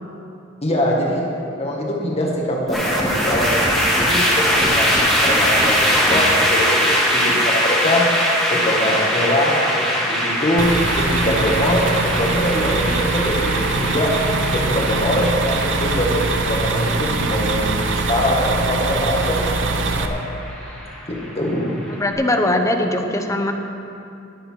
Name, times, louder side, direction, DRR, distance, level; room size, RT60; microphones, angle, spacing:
voice 1, 0.6-1.2 1.5-3.6 4.1-4.9 5.2-5.7 6.1-8.0 8.5-11.9 12.2-14.1 14.5-20.2 21.1-21.8, left 1 dB, 35° left, -2 dB, 1.5 m, -23 dB
sound 1, 2.7-21.9, equal, ahead, 2.2 m, -22 dB
sound 2, 10.6-20.1, right 3 dB, 75° right, 0.8 m, -22 dB
voice 2, 21.9-23.5, left 1 dB, 15° left, 4 dB, 0.8 m, -20 dB
18.5 x 7.9 x 4.5 m, 2.6 s
head